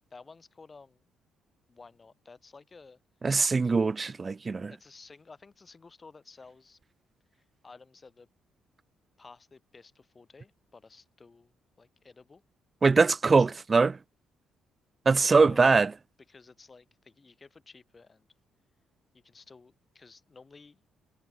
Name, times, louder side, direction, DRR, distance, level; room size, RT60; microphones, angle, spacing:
voice 1, 0.1-1.1 1.7-3.0 4.7-6.8 7.3-8.3 9.2-12.4 13.4-13.6 15.3-15.9 16.3-18.3 19.1-20.8, left 4 dB, 30° left, 6.3 m, -53 dB
voice 2, 3.2-4.7 12.8-14.0 15.1-15.9, right 4 dB, 35° right, 0.4 m, -22 dB
supercardioid pair, 70°, 0 cm